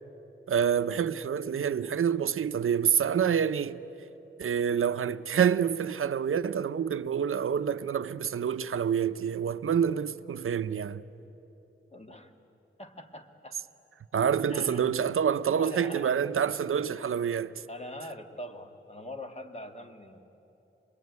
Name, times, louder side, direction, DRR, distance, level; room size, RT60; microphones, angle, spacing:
voice 1, 0.5-3.8 4.4-11.0 14.1-17.5, right 8 dB, 80° right, 0.6 m, -27 dB
voice 2, 11.9-12.3 12.8-13.6 14.5-14.9 15.6-16.3 16.9-17.0 17.7-20.2, left 1 dB, 30° left, 1.8 m, -43 dB
25.5 x 21.0 x 9.4 m
wide cardioid pair, 80°, 21 cm